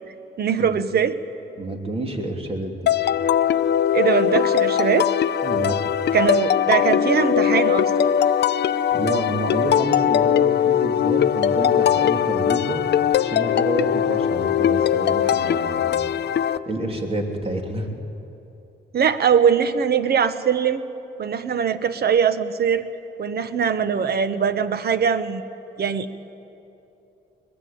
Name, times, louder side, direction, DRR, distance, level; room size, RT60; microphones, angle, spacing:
voice 1, 0.4-1.2 3.9-5.1 6.1-8.1 18.9-20.8 21.2-22.9 23.2-25.4 25.8-26.1, right 7 dB, 55° right, 12 dB, 1.3 m, -21 dB
voice 2, 1.6-2.9 5.4-5.9 8.9-12.8 13.2-16.0 16.6-17.9, right 1 dB, 30° right, 3 dB, 3.1 m, -28 dB
sound 1, 2.9-16.6, left 9 dB, 60° left, 0.7 m, -20 dB
21.5 x 21.0 x 8.8 m, 2.8 s
cardioid pair, 90°, 20 cm